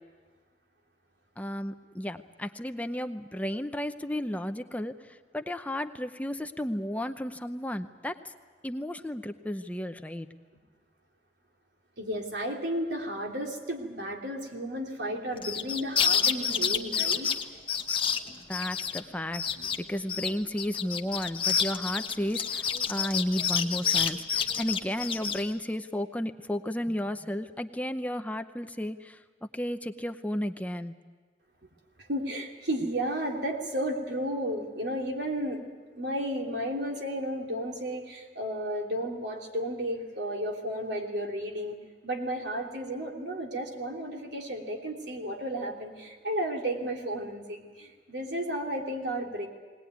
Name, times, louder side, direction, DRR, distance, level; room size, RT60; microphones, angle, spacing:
voice 1, 1.4-8.2 8.6-10.3 18.5-19.4 19.8-30.9, left 1 dB, 10° left, 8 dB, 0.7 m, -33 dB
voice 2, 12.0-17.3 32.1-35.6 35.9-41.8 42.0-49.5, equal, 75° right, 1 dB, 3.3 m, -33 dB
sound 1, 15.4-19.0 19.3-19.8 20.1-25.4, left 7 dB, 30° left, 1.1 m, -28 dB
20.0 x 19.5 x 9.4 m, 1.5 s
head